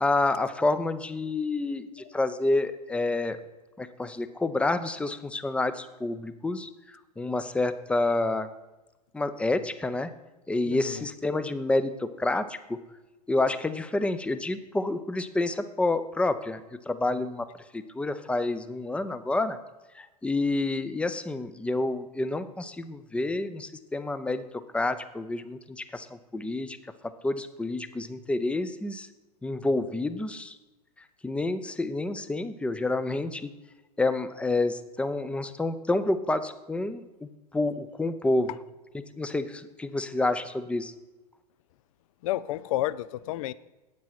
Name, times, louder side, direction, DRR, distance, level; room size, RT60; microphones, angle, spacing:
voice 1, 0.0-3.4 3.8-6.7 7.2-8.5 9.1-10.1 10.5-12.8 13.3-16.6 16.9-17.5 17.7-19.6 19.9-26.8 27.2-29.1 29.4-30.6 31.2-33.5 34.0-38.5 39.2-40.9, left 2 dB, 5° left, 12 dB, 0.5 m, -28 dB
voice 2, 10.6-11.1 42.2-43.5, left 15 dB, 55° left, 18 dB, 0.4 m, -31 dB
9.0 x 7.5 x 5.9 m, 1.1 s
figure-of-eight pair, 95°, 21 cm